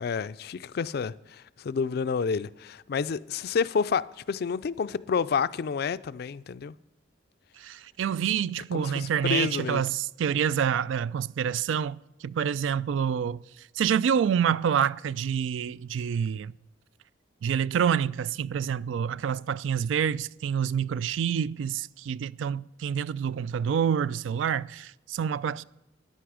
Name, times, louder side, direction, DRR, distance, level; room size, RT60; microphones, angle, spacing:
voice 1, 0.0-6.7 8.7-9.8, left 5 dB, 55° left, 0.4 m, -29 dB
voice 2, 7.6-12.0 12.2-13.4 13.8-16.5 17.4-25.6, right 8 dB, 85° right, 0.3 m, -27 dB
14.0 x 10.0 x 4.9 m
head